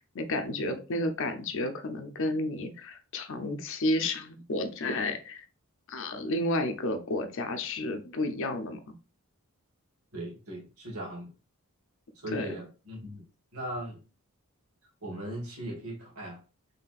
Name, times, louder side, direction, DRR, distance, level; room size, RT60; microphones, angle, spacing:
voice 1, 0.1-5.5 5.9-8.8 12.3-12.6, left 1 dB, 60° left, 7 dB, 0.6 m, -31 dB
voice 2, 10.1-11.3 12.1-13.2 13.5-14.0 15.0-16.4, right 1 dB, 85° right, 0 dB, 1.5 m, -38 dB
4.2 x 3.3 x 2.4 m, 0.33 s
head